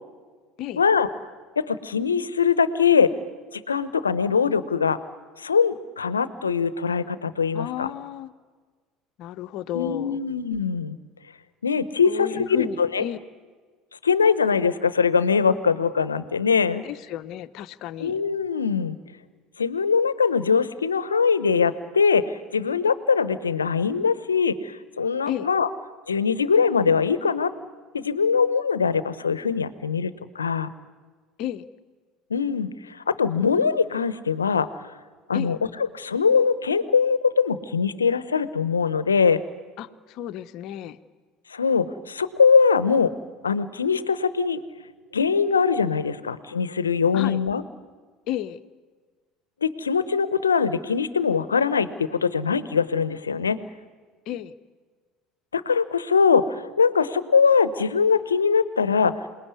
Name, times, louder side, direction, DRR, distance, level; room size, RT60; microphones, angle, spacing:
voice 1, 0.7-1.1 1.6-3.1 3.5-5.0 5.4-7.9 9.7-11.0 11.6-13.0 14.0-16.8 18.0-19.0 19.6-25.7 26.1-27.5 27.9-30.7 32.3-34.7 35.3-35.6 35.9-39.4 41.5-43.1 43.4-44.6 45.1-47.6 49.6-53.6 55.5-59.1, left 5 dB, 90° left, 15 dB, 0.9 m, -22 dB
voice 2, 7.5-8.3 9.2-10.2 12.0-13.2 16.8-18.2 25.3-25.5 31.4-31.7 35.3-35.5 39.8-41.0 47.1-47.4 48.3-48.6 54.3-54.6, left 12 dB, 60° left, 12 dB, 0.9 m, -32 dB
27.5 x 19.5 x 9.7 m, 1.5 s
hypercardioid pair, 65°, 0 cm